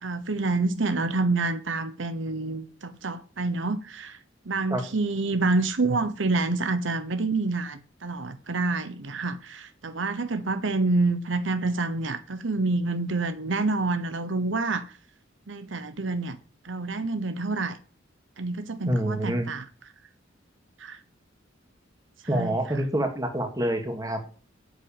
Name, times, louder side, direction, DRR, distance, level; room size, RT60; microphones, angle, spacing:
voice 1, 0.0-4.2 4.5-14.8 15.5-16.4 16.6-17.8 18.4-19.6 20.8-21.0 22.2-22.6, right 3 dB, 70° right, 1.0 m, -27 dB
voice 2, 18.9-19.5 22.3-24.4, right 1 dB, 20° right, 2.3 m, -27 dB
8.1 x 8.0 x 9.0 m
head